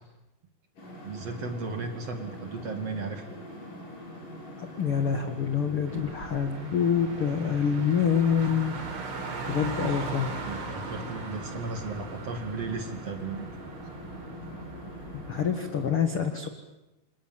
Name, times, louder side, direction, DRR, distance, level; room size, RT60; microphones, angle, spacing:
sound 1, 0.8-15.9, left 1 dB, 45° left, 9.6 m, -43 dB
voice 1, 1.0-3.3 5.9-6.0 9.8-10.1 10.5-13.5, right 4 dB, 40° right, 5 dB, 2.8 m, -35 dB
voice 2, 4.6-8.7 9.5-10.3 15.1-16.5, left 7 dB, 65° left, 6 dB, 1.3 m, -26 dB
Car, 5.9-15.4, right 4 dB, 80° right, 6.9 m, -39 dB
29.0 x 27.0 x 7.6 m, 0.96 s
omnidirectional pair, 5.2 m